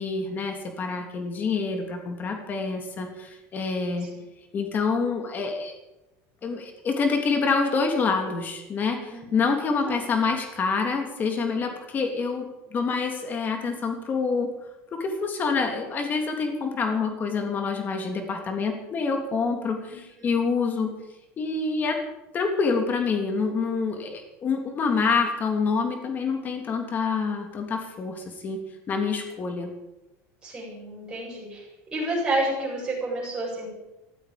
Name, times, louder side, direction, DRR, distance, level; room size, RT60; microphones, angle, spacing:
voice 1, 0.0-4.1 4.5-5.7 6.4-14.5 14.9-20.9 21.4-22.0 22.3-28.6 28.9-29.7, left 4 dB, 25° left, 4 dB, 2.9 m, -27 dB
voice 2, 30.4-31.7 31.9-33.7, right 1 dB, 10° right, -5 dB, 8.0 m, -29 dB
18.0 x 15.0 x 5.3 m, 0.97 s
cardioid pair, 160°, 7 cm